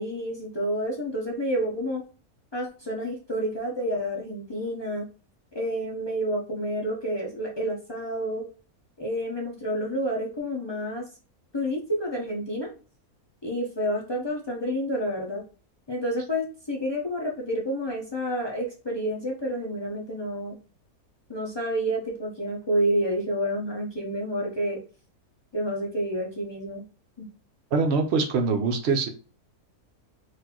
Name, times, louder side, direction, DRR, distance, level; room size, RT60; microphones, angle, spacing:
voice 1, 0.0-2.0 2.5-5.1 5.5-8.4 9.0-11.0 11.5-12.7 13.4-15.4 15.9-20.6 21.3-24.8 25.5-26.8 27.2-27.3, equal, 40° left, -2 dB, 0.3 m, -29 dB
voice 2, 27.7-29.1, right 4 dB, 65° right, 5 dB, 0.7 m, -23 dB
4.0 x 2.6 x 2.9 m, 0.37 s
omnidirectional pair, 1.6 m